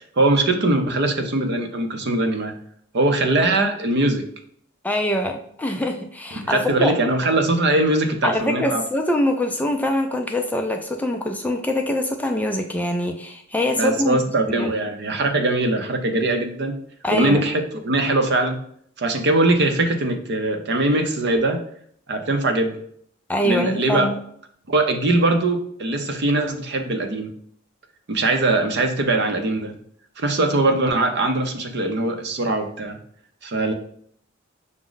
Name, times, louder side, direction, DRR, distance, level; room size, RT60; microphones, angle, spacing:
voice 1, 0.2-2.5 2.9-4.3 6.3-8.8 13.7-16.7 17.1-18.6 19.0-21.6 22.1-22.8 23.4-24.1 24.7-27.3 28.1-29.7 30.2-33.0 33.4-33.7, right 2 dB, 55° right, 6 dB, 0.6 m, -21 dB
voice 2, 4.8-6.9 8.2-14.2 14.5-14.7 17.0-17.4 23.3-24.2, left 1 dB, 10° left, 4 dB, 0.3 m, -24 dB
5.9 x 2.1 x 3.9 m, 0.64 s
head